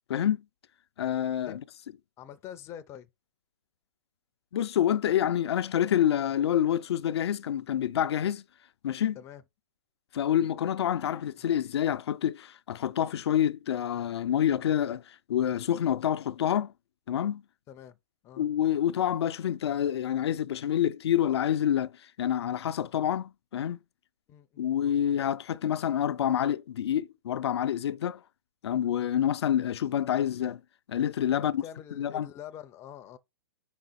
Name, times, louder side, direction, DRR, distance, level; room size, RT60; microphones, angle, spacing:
voice 1, 0.1-0.4 1.0-1.6 4.5-8.4 8.8-9.2 10.1-16.7 17.1-17.4 18.4-21.9 22.2-23.8 24.6-28.2 28.6-30.6 30.9-31.6 32.0-32.3, left 10 dB, 75° left, 0.4 m, -27 dB
voice 2, 2.2-3.1 9.2-9.4 17.7-18.0 18.2-18.5 24.3-24.7 31.3-33.2, left 10 dB, 20° left, 0.4 m, -45 dB
5.5 x 5.1 x 4.0 m
hypercardioid pair, 145°, 14 cm